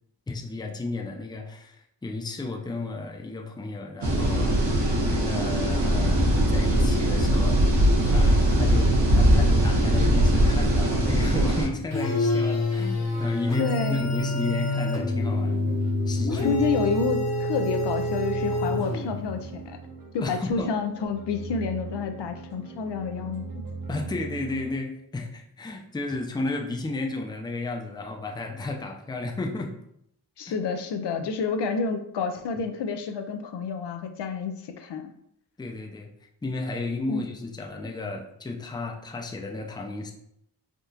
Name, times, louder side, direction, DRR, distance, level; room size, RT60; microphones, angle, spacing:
voice 1, 0.3-4.8 5.1-7.8 8.0-16.6 18.7-18.9 20.2-20.7 23.9-29.7 30.5-30.6 31.2-31.3 35.6-36.1 36.4-40.1, left 3 dB, 10° left, 2 dB, 0.4 m, -33 dB
sound 1, 4.0-11.7, right 1 dB, 85° right, 0.9 m, -21 dB
sound 2, 11.9-19.4, left 2 dB, 40° left, 0.9 m, -27 dB
sound 3, 12.1-24.7, right 4 dB, 50° right, 0.9 m, -41 dB
voice 2, 13.6-14.1 16.4-19.8 20.1-23.6 30.4-35.1 37.1-37.2, left 5 dB, 80° left, 7 dB, 0.5 m, -29 dB
3.6 x 2.4 x 2.7 m, 0.72 s
cardioid pair, 60°, 41 cm